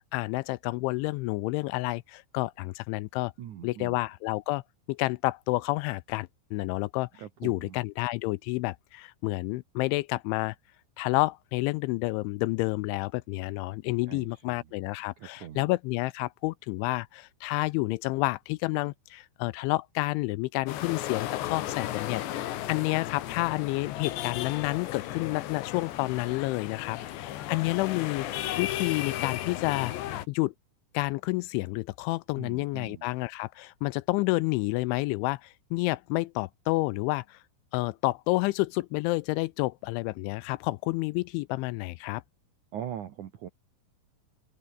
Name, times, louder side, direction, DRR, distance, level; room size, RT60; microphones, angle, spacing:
voice 1, 0.1-3.3 3.6-4.6 4.9-7.1 7.4-10.6 11.0-28.3 28.6-29.9 30.3-30.5 30.9-37.4 37.7-42.2, left 22 dB, 85° left, 2.8 m, -29 dB
voice 2, 3.4-4.0 7.2-7.8 14.1-14.7 15.2-15.7 32.4-33.1 42.7-43.5, right 10 dB, 80° right, 1.7 m, -41 dB
sound 1, 20.7-30.3, left 13 dB, 65° left, 3.6 m, -35 dB
open air
omnidirectional pair, 5.8 m